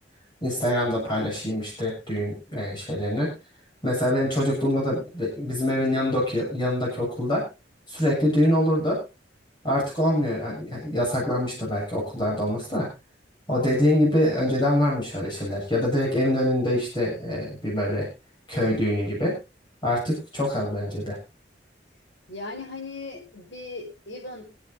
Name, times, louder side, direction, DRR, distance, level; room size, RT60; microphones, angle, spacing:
voice 1, 0.4-3.3 3.8-7.4 7.9-9.0 9.6-12.9 13.5-18.1 18.5-19.3 19.8-21.2, left 1 dB, 25° left, -4 dB, 7.6 m, -24 dB
voice 2, 22.3-24.5, left 3 dB, 75° left, -5 dB, 5.5 m, -38 dB
26.5 x 9.3 x 2.8 m, 0.28 s
head